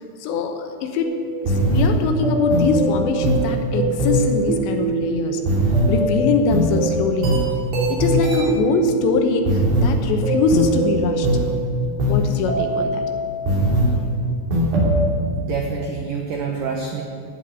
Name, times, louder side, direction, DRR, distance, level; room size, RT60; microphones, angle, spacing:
voice 1, 0.2-1.1 1.4-5.4 5.9-7.3 7.9-11.3 12.1-13.0, left 4 dB, 75° left, 5 dB, 3.0 m, -22 dB
sound 1, 1.0-14.1 14.5-15.0, right 1 dB, 60° right, 4.9 m, -21 dB
voice 2, 15.4-17.0, right 5 dB, 85° right, 1 dB, 1.8 m, -27 dB
15.0 x 6.6 x 9.8 m, 2.3 s
omnidirectional pair, 5.4 m